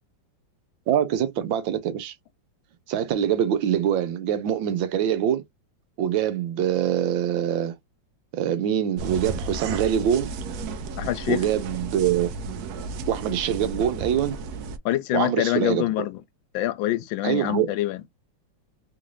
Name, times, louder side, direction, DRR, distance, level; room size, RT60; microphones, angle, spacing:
voice 1, 0.9-2.1 2.9-5.4 6.0-7.7 8.3-10.3 11.3-12.3 13.1-14.4 15.1-15.9 17.2-17.7, right 10 dB, 85° right, 1.5 m, -24 dB
sound 1, 9.0-14.8, right 3 dB, 70° right, 1.0 m, -33 dB
voice 2, 11.0-11.5 14.8-16.2 16.5-18.0, left 15 dB, 85° left, 1.4 m, -25 dB
3.6 x 2.6 x 3.0 m
omnidirectional pair, 2.1 m